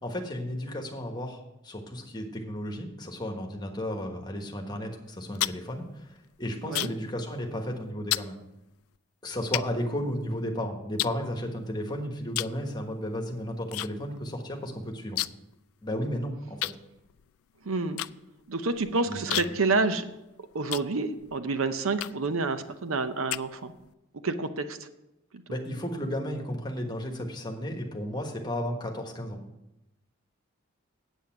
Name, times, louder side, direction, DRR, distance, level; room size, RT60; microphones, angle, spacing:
voice 1, 0.0-6.1 6.4-8.4 9.2-15.2 15.8-16.6 19.0-19.5 25.5-29.4, equal, 20° left, 2 dB, 1.3 m, -34 dB
sound 1, 5.1-7.1 7.4-7.7 8.1-8.3 9.0-9.1 9.5-10.5 11.0-11.8 12.3-12.6 12.9-13.9 14.2-14.3 14.5-15.5 15.8-15.9 16.6-21.4 22.0-22.4 22.9-23.9, left 16 dB, 85° left, 0.3 m, -33 dB
voice 2, 17.7-18.0 18.5-20.1 20.5-23.7 24.2-24.9, right 3 dB, 80° right, 10 dB, 0.7 m, -28 dB
8.4 x 8.2 x 5.9 m, 0.89 s
head